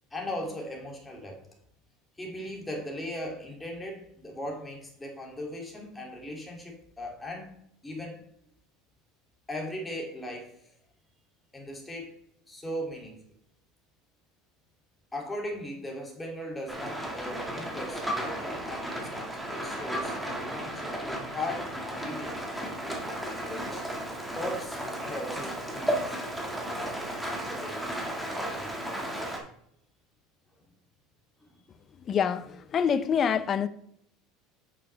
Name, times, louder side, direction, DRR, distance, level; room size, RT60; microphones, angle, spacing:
voice 1, 0.1-1.4 2.2-7.6 7.8-8.2 9.5-10.6 11.5-12.1 12.5-13.2 15.1-22.3 22.6-22.9 23.4-23.8 24.3-27.8 28.4-28.7, left 1 dB, 10° left, 2.7 m, -38 dB
Rain, 16.7-29.4, right 1 dB, 5° right, 1.8 m, -34 dB
voice 2, 32.1-33.7, left 7 dB, 35° left, 0.6 m, -26 dB
8.9 x 6.7 x 3.4 m
supercardioid pair, 115°, 0 cm